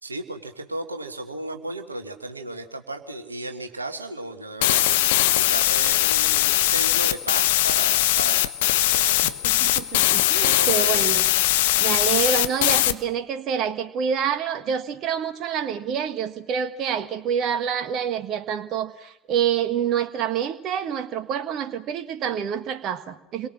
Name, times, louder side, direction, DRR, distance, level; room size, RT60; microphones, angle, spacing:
voice 1, 0.0-9.4 10.4-11.0, right 2 dB, 85° right, 6 dB, 1.5 m, -35 dB
sound 1, 4.6-12.9, left 15 dB, 65° left, 0.9 m, -21 dB
voice 2, 9.2-11.3 11.8-23.5, right 8 dB, 45° right, 10 dB, 1.5 m, -27 dB
29.0 x 22.5 x 6.3 m, 0.76 s
figure-of-eight pair, 65°, 0 cm